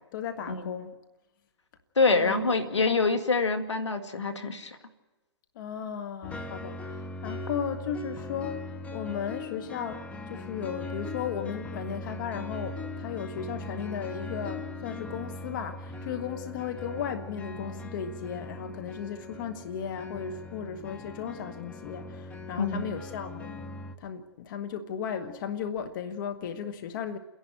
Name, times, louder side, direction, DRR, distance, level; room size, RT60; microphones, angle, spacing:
voice 1, 0.1-0.9 2.1-2.5 2.8-3.2 5.5-23.6 24.0-27.2, left 7 dB, 45° left, 1.3 m, -36 dB
voice 2, 2.0-4.8 22.6-22.8, left 4 dB, 90° left, 2.4 m, -25 dB
sound 1, 6.2-24.0, left 2 dB, 10° left, 0.9 m, -40 dB
29.5 x 11.0 x 9.3 m
hypercardioid pair, 135°, 15 cm